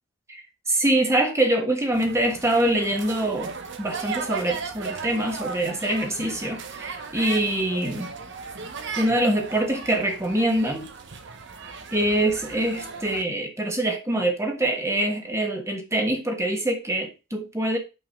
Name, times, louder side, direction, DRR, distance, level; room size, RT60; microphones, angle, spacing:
voice 1, 0.7-3.5 3.8-8.1 9.0-10.9 11.9-17.8, right 1 dB, 15° right, 1.4 m, -24 dB
sound 1, 1.9-13.2, right 5 dB, 60° right, 1.1 m, -36 dB
5.6 x 5.2 x 5.2 m
head